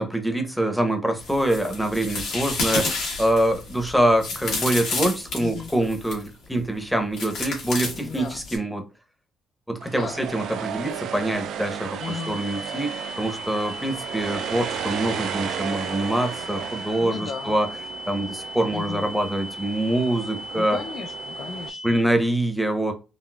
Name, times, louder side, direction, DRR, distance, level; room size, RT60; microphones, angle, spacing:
voice 1, 0.0-8.8 9.7-17.7 18.1-20.8 21.8-22.9, right 1 dB, ahead, 0.7 m, -25 dB
sound 1, 1.2-6.3 7.2-8.6, left 3 dB, 80° left, 1.3 m, -30 dB
voice 2, 5.4-5.7 8.0-8.4 9.9-10.2 12.0-12.4 17.0-17.6 18.7-19.0 20.5-21.9, left 5 dB, 50° left, 0.3 m, -35 dB
sound 2, 9.8-21.7, right 8 dB, 70° right, 0.3 m, -34 dB
sound 3, 12.0-22.0, equal, 35° right, 0.7 m, -38 dB
4.0 x 2.1 x 2.2 m
cardioid pair, 120°, 0 cm